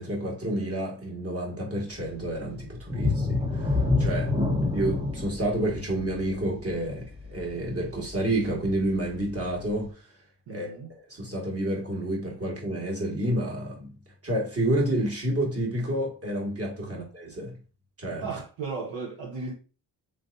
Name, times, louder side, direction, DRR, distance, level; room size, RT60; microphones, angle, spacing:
voice 1, 0.0-4.3 4.7-10.0 10.5-14.0 14.2-17.6 18.0-18.4, right 1 dB, 30° right, 1.9 m, -29 dB
sound 1, 2.9-8.3 8.8-8.9 9.4-9.5, left 3 dB, 10° right, 1.4 m, -27 dB
voice 2, 10.5-10.9 16.8-17.0 18.2-19.5, right 4 dB, 70° right, 1.0 m, -36 dB
3.3 x 3.2 x 2.7 m
cardioid pair, 65°, 45 cm